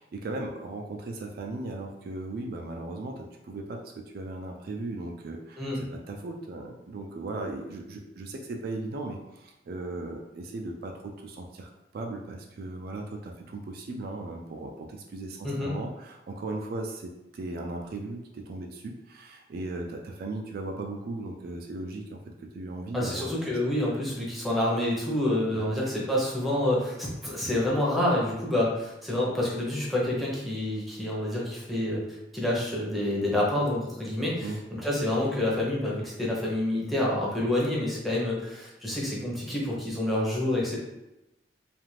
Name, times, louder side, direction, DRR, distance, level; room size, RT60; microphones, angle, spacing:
voice 1, 0.0-23.3 25.5-25.7 34.4-34.6, right 2 dB, 55° right, 2 dB, 0.3 m, -37 dB
voice 2, 22.9-32.0 32.3-40.8, left 1 dB, ahead, -5 dB, 0.7 m, -28 dB
2.5 x 2.4 x 3.1 m, 0.95 s
head